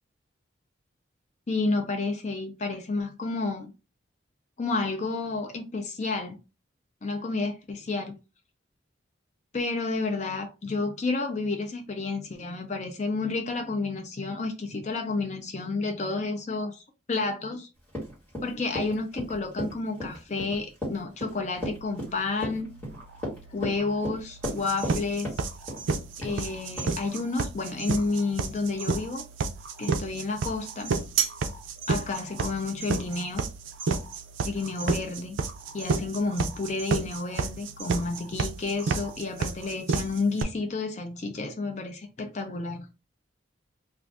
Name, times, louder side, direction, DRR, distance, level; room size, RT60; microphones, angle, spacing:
voice 1, 1.5-3.7 4.6-6.4 7.0-8.1 9.5-17.7 18.4-22.7 23.5-25.3 26.2-29.2 29.8-30.9 31.9-33.4 34.4-35.4 35.7-42.9, left 3 dB, 35° left, 0.4 m, -30 dB
Run, 17.9-25.0 25.2-25.9 26.2-26.4 26.8-26.9, equal, 5° left, 1.4 m, -35 dB
sound 1, 21.6-39.7, right 3 dB, 65° right, 1.1 m, -50 dB
sound 2, 24.4-40.4, right 4 dB, 85° right, 0.4 m, -29 dB
2.5 x 2.4 x 3.4 m
head